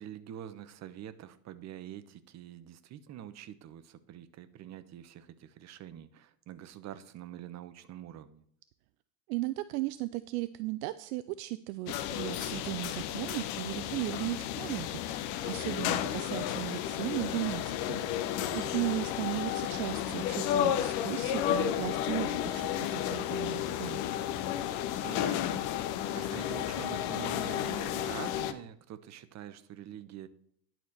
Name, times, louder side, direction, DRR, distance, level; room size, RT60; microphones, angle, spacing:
voice 1, 0.0-8.4 18.4-18.9 25.0-25.8 26.1-30.3, right 10 dB, 35° right, 12 dB, 0.9 m, -45 dB
voice 2, 9.3-24.0, right 18 dB, 60° right, 13 dB, 0.6 m, -36 dB
sound 1, 11.9-28.5, left 11 dB, 50° left, 0.9 m, -32 dB
11.0 x 4.5 x 6.6 m, 0.64 s
hypercardioid pair, 95°, 48 cm